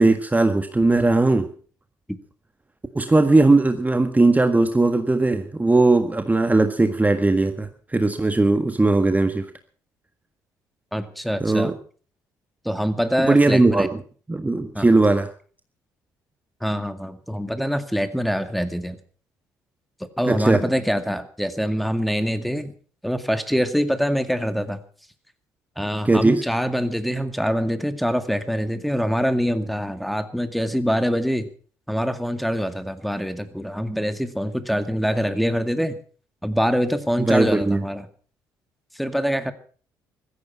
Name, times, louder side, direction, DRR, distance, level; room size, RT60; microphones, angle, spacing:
voice 1, 0.0-1.5 2.9-9.5 11.4-11.7 13.2-14.0 14.3-15.3 20.3-20.6 26.0-26.4 37.2-37.8, right 2 dB, 15° right, 8 dB, 1.7 m, -18 dB
voice 2, 10.9-11.7 12.6-13.9 14.7-14.9 16.6-19.0 20.0-22.7 23.0-24.8 25.8-31.5 31.9-36.0 36.4-38.1 38.9-39.5, equal, ahead, 9 dB, 2.1 m, -24 dB
16.0 x 14.0 x 5.7 m, 0.42 s
hypercardioid pair, 55°, 9 cm